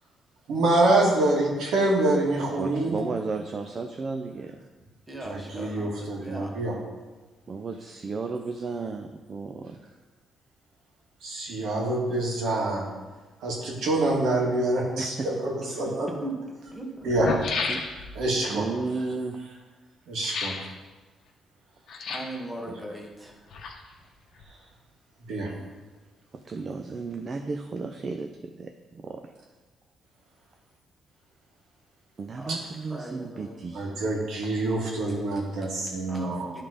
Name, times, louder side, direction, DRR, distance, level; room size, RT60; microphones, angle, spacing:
voice 1, 0.5-3.1 5.2-6.8 11.2-12.9 13.4-16.1 17.0-17.3 18.2-18.7 20.1-20.6 25.3-25.5 32.5-32.6 33.7-36.5, right 2 dB, 80° right, -2 dB, 1.9 m, -26 dB
voice 2, 2.6-4.6 7.5-9.8 15.0-15.3 17.2-17.8 18.5-19.4 26.5-29.2 32.2-33.9, right 4 dB, 40° right, 4 dB, 0.5 m, -34 dB
voice 3, 5.1-6.6 15.8-16.4 16.7-17.1 22.1-23.3 32.4-32.6 32.9-33.6 36.1-36.6, right 1 dB, 10° right, 0 dB, 1.4 m, -38 dB
sound 1, 15.7-15.8 16.7-16.8 17.0-18.3 20.2-20.7 21.9-22.4 23.3-24.1 24.4-24.5, left 4 dB, 65° left, 1.0 m, -32 dB
11.0 x 3.7 x 5.0 m, 1.3 s
cardioid pair, 90°, 0 cm